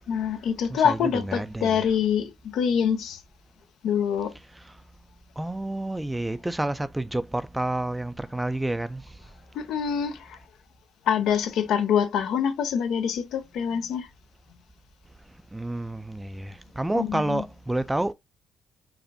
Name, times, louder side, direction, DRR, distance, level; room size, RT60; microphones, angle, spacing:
voice 1, 0.1-3.2 3.8-4.3 9.5-10.4 11.1-14.1 16.9-17.4, left 8 dB, 80° left, 0.6 m, -25 dB
voice 2, 0.7-1.9 5.4-9.0 15.5-18.1, right 1 dB, 10° right, 0.4 m, -29 dB
4.9 x 2.5 x 2.6 m
cardioid pair, 90°, 0 cm